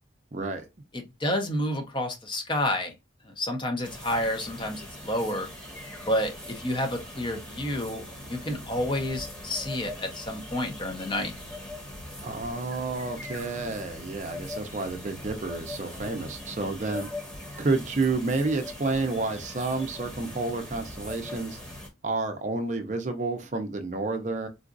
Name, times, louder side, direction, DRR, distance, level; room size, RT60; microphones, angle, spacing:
voice 1, 0.3-0.6 12.2-17.1 17.6-21.6 22.0-24.5, right 3 dB, 40° right, 0.5 m, -30 dB
voice 2, 0.9-2.9 3.2-5.5 6.1-11.3 16.9-17.0, left 1 dB, 25° left, 0.6 m, -30 dB
sound 1, 3.8-21.9, left 1 dB, 5° left, 1.0 m, -41 dB
3.8 x 2.4 x 2.4 m
head